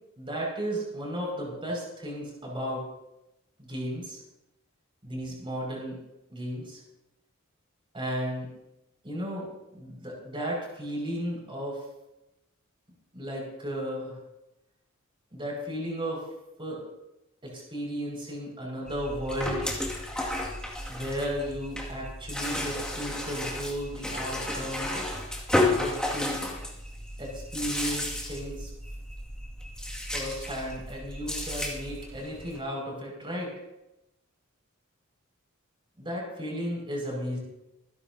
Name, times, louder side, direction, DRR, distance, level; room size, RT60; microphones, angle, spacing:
voice 1, 0.2-2.9 3.6-4.2 5.0-6.0 6.3-6.8 7.9-8.5 9.0-11.8 13.1-14.2 15.3-16.3 16.6-16.8 17.4-19.7 20.9-24.9 25.6-26.4 27.2-28.7 30.1-33.5 36.0-37.4, equal, 25° right, -2 dB, 5.9 m, -34 dB
sound 1, 18.9-32.6, left 1 dB, 5° left, 2.2 m, -32 dB
26.5 x 11.0 x 2.8 m, 0.92 s
head